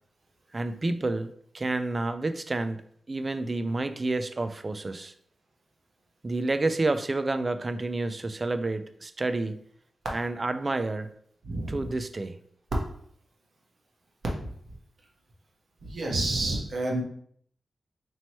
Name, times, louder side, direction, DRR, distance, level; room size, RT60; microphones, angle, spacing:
voice 1, 0.5-2.8 3.1-5.1 6.2-9.6 10.1-11.1 11.7-12.4, right 2 dB, 30° right, 10 dB, 0.3 m, -29 dB
voice 2, 11.4-11.9 14.3-14.7 15.8-17.0, right 2 dB, 60° right, -1 dB, 1.1 m, -30 dB
3.0 x 3.0 x 4.2 m, 0.64 s
wide cardioid pair, 110°, 0 cm